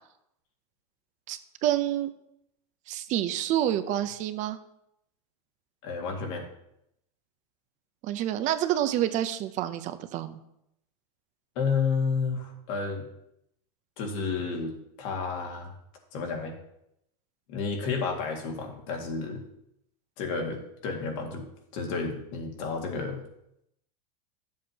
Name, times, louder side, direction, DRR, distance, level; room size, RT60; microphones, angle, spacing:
voice 1, 1.3-2.1 2.9-4.6 8.0-10.4, right 12 dB, 40° right, 10 dB, 0.6 m, -28 dB
voice 2, 5.8-6.5 11.6-13.1 14.0-15.7 16.1-16.5 17.5-19.4 20.2-21.4 21.7-23.2, left 5 dB, 60° left, 2 dB, 2.0 m, -31 dB
11.5 x 7.5 x 2.9 m, 0.80 s
supercardioid pair, 140°, 20 cm